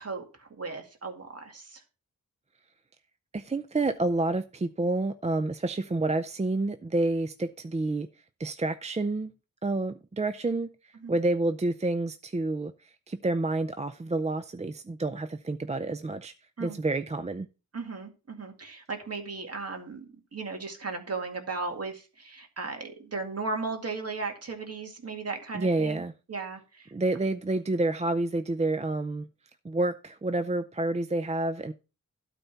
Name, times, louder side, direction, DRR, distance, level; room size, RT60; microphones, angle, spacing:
voice 1, 0.0-1.8 11.0-11.1 16.6-16.8 17.7-20.0 20.3-26.0 26.3-26.9, right 4 dB, 45° right, 2.2 m, -36 dB
voice 2, 3.3-8.1 8.4-9.3 9.6-10.7 11.1-12.7 13.1-16.3 16.6-17.5 25.5-26.1 26.9-29.3 29.6-31.7, right 2 dB, 20° right, 0.5 m, -29 dB
12.5 x 4.2 x 5.8 m
wide cardioid pair, 110°, 33 cm